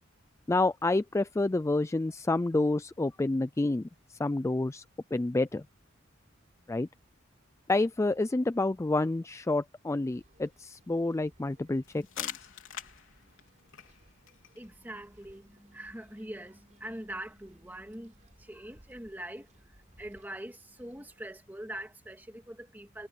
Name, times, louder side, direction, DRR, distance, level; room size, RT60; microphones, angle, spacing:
voice 1, 0.5-4.8 5.1-5.6 6.7-6.9 7.7-12.3, left 2 dB, 15° left, 0.3 m, -29 dB
sound 1, 10.1-21.2, right 1 dB, 35° right, 4.9 m, -64 dB
sound 2, 11.8-17.4, left 10 dB, 65° left, 4.0 m, -46 dB
voice 2, 14.6-18.1 18.4-19.5 20.0-23.1, right 1 dB, 10° right, 2.1 m, -43 dB
head